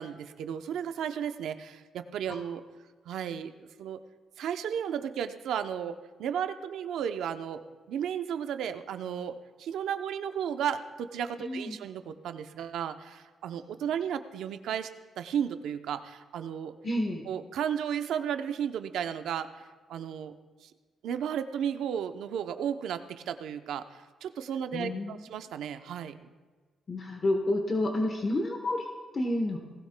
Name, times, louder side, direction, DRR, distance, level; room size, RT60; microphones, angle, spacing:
voice 1, 0.0-2.6 3.1-4.0 4.4-7.6 7.9-14.9 15.2-16.7 17.3-20.4 20.6-20.7 21.0-26.3, right 8 dB, 85° right, 8 dB, 0.6 m, -34 dB
voice 2, 11.4-11.8 16.8-17.2 24.7-25.2 26.9-29.6, left 1 dB, 30° left, 3 dB, 1.0 m, -30 dB
18.5 x 16.5 x 2.2 m, 1.4 s
cardioid pair, 150°, 0 cm